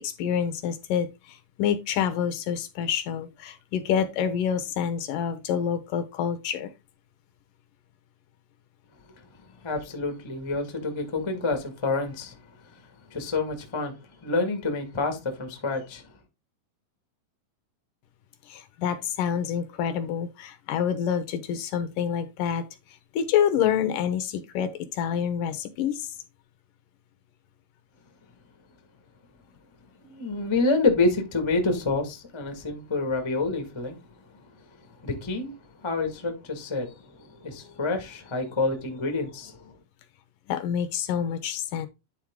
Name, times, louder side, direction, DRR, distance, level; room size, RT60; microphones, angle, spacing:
voice 1, 0.0-6.7 18.5-22.6 23.1-26.1 40.5-41.9, left 8 dB, 75° left, 2.3 m, -27 dB
voice 2, 9.6-12.3 13.1-13.9 14.2-16.0 30.0-34.0 35.0-35.5 35.8-39.7, left 3 dB, 25° left, 0.6 m, -28 dB
10.5 x 4.0 x 3.6 m
omnidirectional pair, 4.1 m